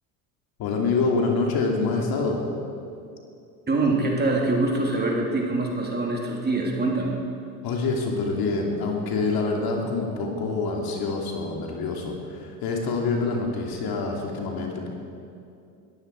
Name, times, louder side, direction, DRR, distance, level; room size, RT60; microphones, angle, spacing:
voice 1, 0.6-2.4 7.6-14.9, left 3 dB, 50° left, 1 dB, 3.0 m, -26 dB
voice 2, 3.7-7.1, right 2 dB, 20° right, -1 dB, 3.3 m, -24 dB
20.5 x 14.5 x 4.8 m, 2.5 s
hypercardioid pair, 70°, 46 cm